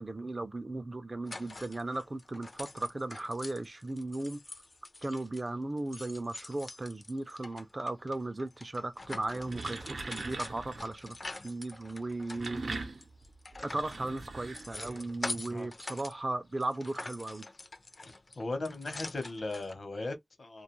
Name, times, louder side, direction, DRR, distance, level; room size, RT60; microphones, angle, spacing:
voice 1, 0.0-4.4 5.0-11.2 11.4-12.8 13.6-17.4, right 2 dB, 35° right, 0.3 m, -36 dB
sound 1, 1.3-5.5 5.8-16.1 16.5-19.7, left 2 dB, 45° left, 0.4 m, -45 dB
sound 2, 9.2-10.9 12.1-15.2, right 3 dB, 80° right, 0.6 m, -41 dB
voice 2, 18.0-20.6, left 2 dB, 65° left, 0.8 m, -38 dB
2.3 x 2.2 x 3.0 m
wide cardioid pair, 90°, 0 cm